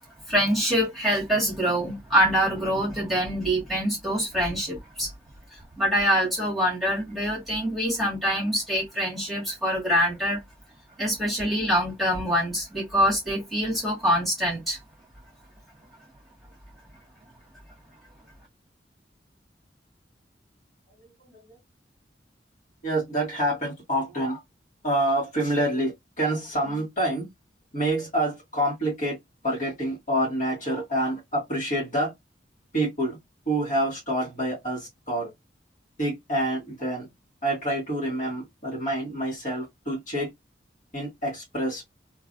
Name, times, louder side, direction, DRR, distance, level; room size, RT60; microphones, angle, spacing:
voice 1, 0.3-5.1 5.8-10.4 11.0-14.8, equal, ahead, 1.8 m, -25 dB
voice 2, 22.8-24.4 24.8-27.3 27.7-29.2 29.4-32.1 32.7-33.2 33.5-35.3 36.0-37.1 37.4-40.3 40.9-41.8, right 1 dB, 45° left, 2.2 m, -27 dB
3.2 x 2.7 x 2.5 m
head